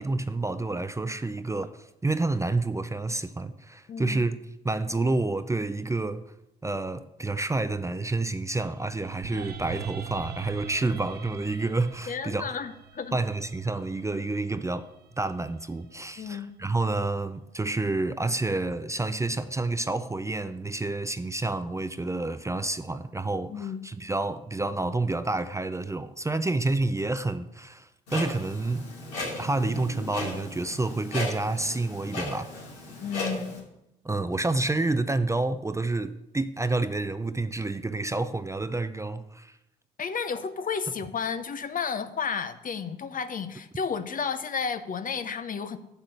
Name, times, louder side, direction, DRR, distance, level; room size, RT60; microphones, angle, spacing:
voice 1, 0.0-4.4 4.6-6.2 6.6-12.5 13.1-14.9 15.2-28.9 29.2-32.5 34.0-39.6, right 2 dB, 15° right, 0.6 m, -29 dB
voice 2, 3.9-4.3 12.1-13.2 16.2-16.5 23.5-23.9 33.0-33.6 40.0-45.8, left 6 dB, 40° left, 0.8 m, -32 dB
sound 1, 8.5-16.7, right 7 dB, 50° right, 0.9 m, -44 dB
Clock, 28.1-33.6, left 2 dB, 85° left, 2.6 m, -36 dB
6.8 x 5.9 x 6.7 m
hypercardioid pair, 50°, 21 cm